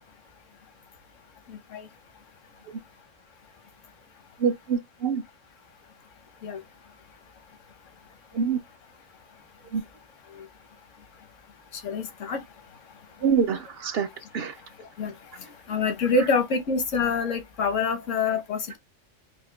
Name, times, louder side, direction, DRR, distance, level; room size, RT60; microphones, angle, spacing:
voice 1, 1.5-1.9 6.4-6.6 10.3-10.5 11.7-12.5 15.0-18.8, left 4 dB, 80° left, 1.2 m, -27 dB
voice 2, 4.4-5.2 8.3-8.6 9.7-9.8 13.2-14.1 14.3-14.5, right 6 dB, 60° right, 0.8 m, -25 dB
4.9 x 2.2 x 2.2 m
omnidirectional pair, 1.3 m